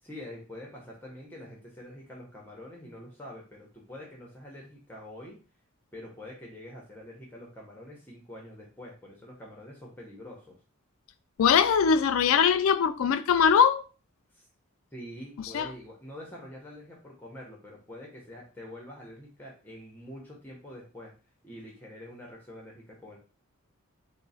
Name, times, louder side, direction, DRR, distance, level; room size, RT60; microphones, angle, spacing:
voice 1, 0.0-5.4 5.9-10.6 14.3-14.5 14.9-21.1 21.4-23.2, left 1 dB, 10° left, 0.7 m, -45 dB
voice 2, 11.4-13.8 15.5-15.7, left 7 dB, 70° left, 0.3 m, -21 dB
3.7 x 2.1 x 4.0 m
head